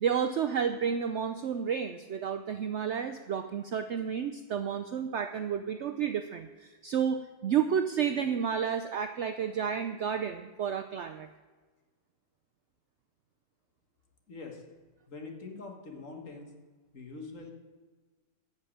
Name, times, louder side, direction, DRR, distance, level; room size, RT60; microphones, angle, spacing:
voice 1, 0.0-11.3, right 7 dB, 85° right, 9 dB, 0.6 m, -31 dB
voice 2, 14.3-14.6 15.1-16.5 16.9-17.5, left 3 dB, 50° left, 2 dB, 1.9 m, -44 dB
10.5 x 6.6 x 8.5 m, 1.3 s
omnidirectional pair, 1.8 m